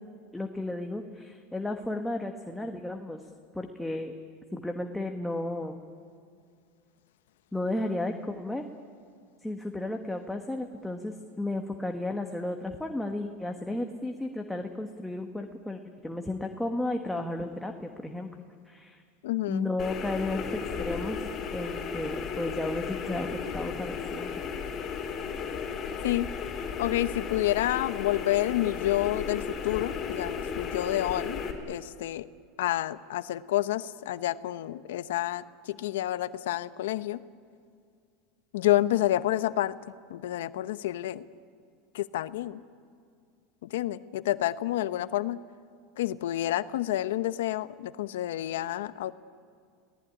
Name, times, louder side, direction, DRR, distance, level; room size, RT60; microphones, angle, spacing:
voice 1, 0.3-3.2 3.5-4.1 4.5-5.8 7.5-8.6 9.4-19.0 19.5-21.2 21.5-24.4, left 2 dB, 5° left, 3 dB, 1.4 m, -33 dB
voice 2, 19.2-19.7 26.0-26.3 26.8-31.4 31.7-32.3 32.6-37.2 38.5-39.7 40.1-41.2 41.9-42.6 43.6-45.4 46.0-49.1, left 14 dB, 85° left, 14 dB, 0.9 m, -29 dB
sound 1, 19.8-31.5, left 6 dB, 30° left, 3.8 m, -35 dB
26.5 x 18.5 x 10.0 m, 2.2 s
supercardioid pair, 130°, 0 cm